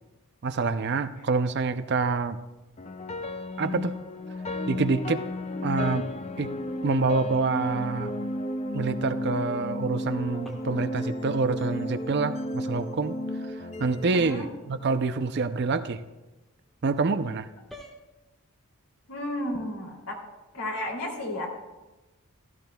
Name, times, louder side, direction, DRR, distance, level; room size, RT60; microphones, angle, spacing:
voice 1, 0.4-2.4 3.6-3.9 4.7-5.2 5.6-6.1 6.4-6.5 6.8-8.1 8.7-13.2 13.8-16.0 16.8-17.5, right 4 dB, 50° right, 11 dB, 0.5 m, -26 dB
sound 1, 2.8-15.0, left 1 dB, 30° left, 0.4 m, -33 dB
sound 2, 10.4-10.9 14.1-14.6 17.7-18.0, equal, ahead, 1.2 m, -46 dB
voice 2, 14.0-14.4 19.1-20.2 20.5-21.5, left 1 dB, 85° left, -1 dB, 2.8 m, -33 dB
16.0 x 13.5 x 2.3 m, 1.1 s
head